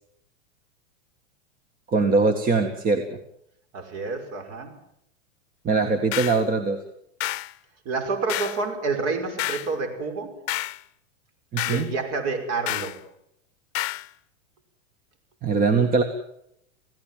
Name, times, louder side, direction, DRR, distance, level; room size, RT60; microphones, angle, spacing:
voice 1, 1.9-3.0 5.6-6.8 11.5-11.9 15.4-16.0, right 4 dB, 20° right, 6 dB, 1.9 m, -21 dB
voice 2, 3.7-4.7 7.8-10.3 11.6-13.0, right 4 dB, 40° right, 6 dB, 6.2 m, -28 dB
sound 1, 6.1-6.4 7.2-7.5 8.3-8.6 9.4-9.7 10.5-10.8 11.6-11.9 12.7-13.0 13.7-14.1, left 17 dB, 55° left, 0.9 m, -29 dB
28.0 x 17.0 x 7.7 m, 0.74 s
supercardioid pair, 140°, 38 cm